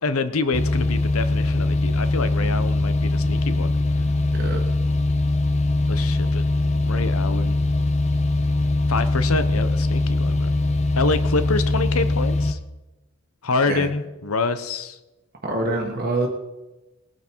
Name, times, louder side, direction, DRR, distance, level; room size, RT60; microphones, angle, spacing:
voice 1, 0.0-3.7 5.9-6.4 6.8-7.6 8.9-10.5 11.0-12.6 13.4-15.0, left 3 dB, 80° left, 12 dB, 0.9 m, -26 dB
sound 1, 0.5-12.5, left 2 dB, 30° left, 0.6 m, -21 dB
voice 2, 15.4-16.3, right 2 dB, 45° right, 1 dB, 1.4 m, -25 dB
19.0 x 9.0 x 4.6 m, 1.1 s
head